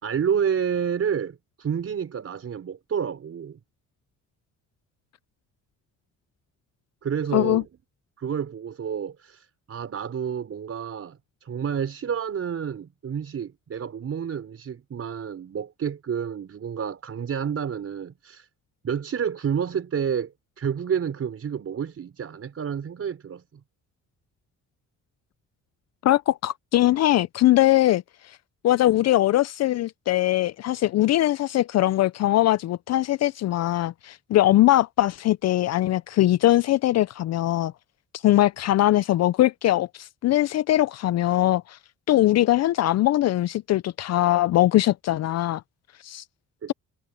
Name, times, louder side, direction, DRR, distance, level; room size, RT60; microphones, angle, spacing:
voice 1, 0.0-3.6 7.0-7.7 8.2-18.5 18.8-23.6 46.6-46.7, right 7 dB, 50° right, 4.7 m, -29 dB
voice 2, 7.3-7.6 26.0-28.4 28.6-37.7 38.2-41.8 42.1-45.6 46.0-46.2, left 14 dB, 60° left, 0.5 m, -21 dB
cardioid pair, 90°, 30 cm